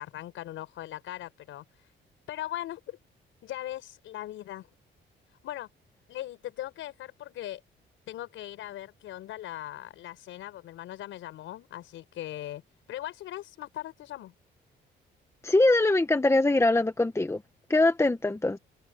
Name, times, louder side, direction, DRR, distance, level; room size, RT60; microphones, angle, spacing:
voice 1, 0.0-1.9 2.3-3.0 3.4-4.7 5.4-5.7 6.1-7.6 8.1-12.6 12.9-14.3, left 13 dB, 85° left, 6.6 m, -39 dB
voice 2, 15.4-17.4 17.7-18.6, left 2 dB, 15° left, 1.4 m, -23 dB
open air
cardioid pair, 90°, 20 cm